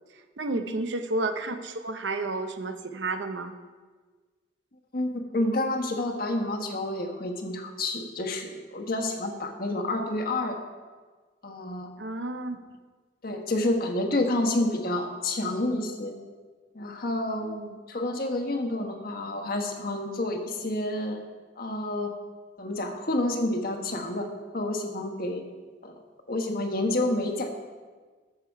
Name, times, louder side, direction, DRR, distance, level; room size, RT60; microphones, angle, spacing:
voice 1, 0.4-3.5 12.0-12.6 17.4-17.8, right 2 dB, 90° right, 8 dB, 0.8 m, -31 dB
voice 2, 4.9-10.6 11.4-11.9 13.2-16.2 16.7-17.5 17.9-21.2 21.6-22.1 22.6-24.3 24.5-25.4 25.8-25.9 26.3-27.6, left 1 dB, 55° left, 3 dB, 1.4 m, -29 dB
13.5 x 6.7 x 4.7 m, 1.4 s
head